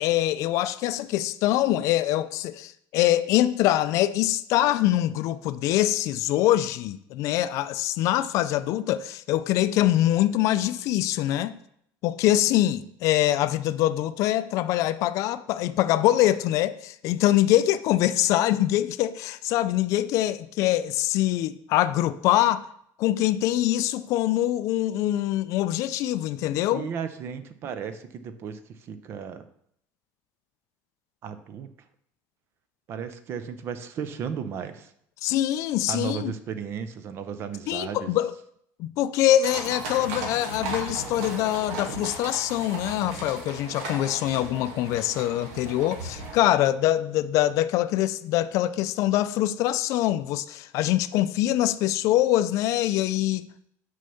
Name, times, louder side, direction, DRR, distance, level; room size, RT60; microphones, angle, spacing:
voice 1, 0.0-11.6 12.0-22.6 23.0-26.9 35.2-36.3 37.7-38.3 38.8-53.5, left 13 dB, 50° left, 0.4 m, -24 dB
voice 2, 26.7-29.4 31.2-31.7 32.9-34.9 35.9-38.2, right 7 dB, 35° right, 0.6 m, -34 dB
sound 1, 39.4-46.4, right 3 dB, 85° right, 2.3 m, -36 dB
6.3 x 5.5 x 7.0 m
cardioid pair, 170°, 7 cm